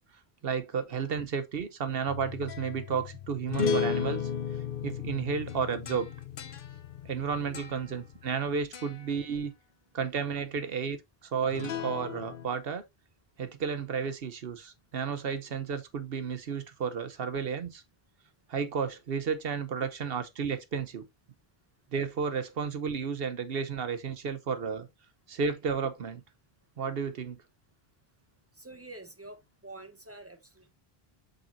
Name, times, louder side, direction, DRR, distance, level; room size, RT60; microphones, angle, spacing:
voice 1, 0.4-4.3 4.8-6.1 7.0-9.5 9.9-12.8 13.4-17.8 18.5-21.0 21.9-24.9 25.3-26.2 26.8-27.4, right 6 dB, 70° right, 1.1 m, -32 dB
sound 1, 2.1-8.4 8.7-9.1 11.5-12.5, left 6 dB, 65° left, 1.0 m, -35 dB
voice 2, 28.5-30.7, right 2 dB, 15° right, 1.0 m, -48 dB
7.2 x 5.5 x 2.6 m
omnidirectional pair, 1.0 m